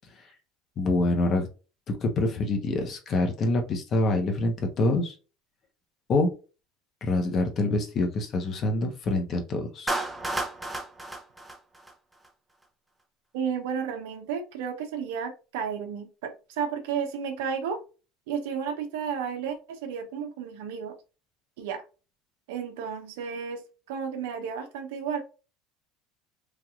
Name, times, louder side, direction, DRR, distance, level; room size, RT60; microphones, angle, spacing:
voice 1, 0.8-1.5 1.9-5.1 6.1-6.3 7.0-9.9, left 2 dB, 45° left, 1.0 m, -26 dB
Clapping, 9.9-12.3, right 2 dB, 10° right, 0.7 m, -32 dB
voice 2, 13.3-17.8 18.3-20.9 21.6-21.8 22.5-23.6 23.9-25.2, right 7 dB, 75° right, 0.7 m, -32 dB
3.3 x 2.7 x 2.4 m
hypercardioid pair, 85°, 0 cm